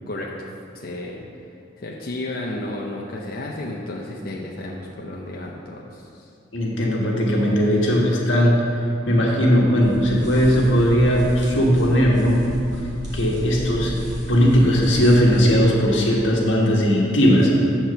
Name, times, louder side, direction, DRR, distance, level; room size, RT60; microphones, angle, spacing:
voice 1, 0.1-1.2 1.8-6.3, left 1 dB, 50° left, -2 dB, 0.7 m, -32 dB
voice 2, 6.5-8.6 9.1-12.4 13.1-13.9 14.3-17.6, equal, 75° left, -2 dB, 1.5 m, -18 dB
sound 1, 9.8-15.6, equal, 40° right, 1.8 m, -31 dB
7.6 x 4.4 x 6.7 m, 2.5 s
head